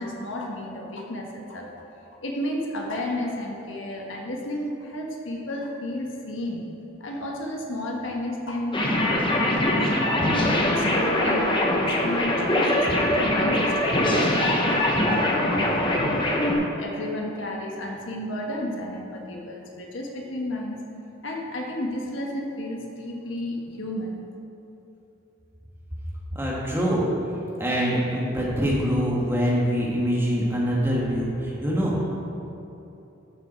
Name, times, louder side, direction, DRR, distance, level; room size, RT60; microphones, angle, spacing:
voice 1, 0.0-1.7 2.2-6.6 7.0-10.1 10.4-16.2 16.8-20.8 21.2-24.2, left 1 dB, 70° left, 0 dB, 1.4 m, -32 dB
sound 1, 8.7-16.5, left 1 dB, 25° left, 1.1 m, -22 dB
voice 2, 26.3-27.1 27.6-32.0, equal, 10° right, -5 dB, 1.8 m, -24 dB
11.5 x 7.0 x 4.5 m, 2.9 s
head